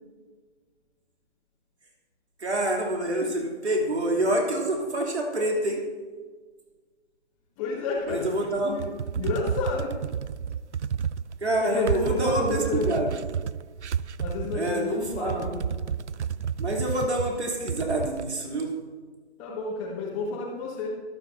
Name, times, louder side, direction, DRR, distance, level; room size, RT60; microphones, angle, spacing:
voice 1, 2.4-5.8 8.1-8.7 11.4-13.1 14.5-15.4 16.6-18.7, right 1 dB, 75° right, -1 dB, 3.1 m, -27 dB
voice 2, 7.6-8.3 8.6-10.0 11.6-12.9 14.2-15.7 19.4-21.0, left 4 dB, 15° left, -6 dB, 1.5 m, -30 dB
sound 1, 8.1-18.3, right 7 dB, 90° right, 0.5 m, -31 dB
24.5 x 9.2 x 2.7 m, 1.4 s
figure-of-eight pair, 145°, 34 cm